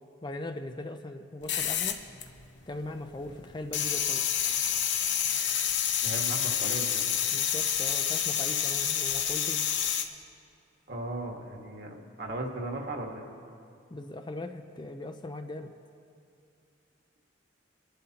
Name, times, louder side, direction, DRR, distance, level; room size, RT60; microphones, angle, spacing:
voice 1, 0.2-2.0 2.7-4.2 7.3-9.6 13.9-15.7, left 1 dB, 25° left, 6 dB, 0.5 m, -39 dB
sound 1, 1.4-2.7 3.0-10.0, left 9 dB, 65° left, 0.8 m, -28 dB
voice 2, 6.0-7.0 10.9-13.3, right 2 dB, 55° right, 1 dB, 1.5 m, -37 dB
28.5 x 11.5 x 2.9 m, 2.4 s
head